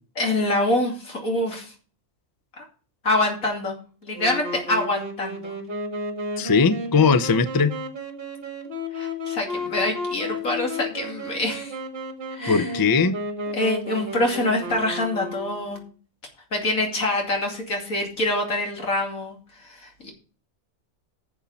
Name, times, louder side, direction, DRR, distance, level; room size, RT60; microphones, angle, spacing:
voice 1, 0.2-1.7 2.6-2.7 3.0-3.7 4.0-5.5 8.9-11.8 12.3-12.7 13.5-15.8 16.5-20.1, left 2 dB, 85° left, 1 dB, 3.0 m, -25 dB
Wind instrument woodwind instrument, 4.1-15.9, left 1 dB, 45° right, 1.8 m, -33 dB
voice 2, 6.4-7.8 12.5-13.2, left 5 dB, 30° left, 12 dB, 0.4 m, -19 dB
11.5 x 7.1 x 4.1 m, 0.39 s
omnidirectional pair, 1.4 m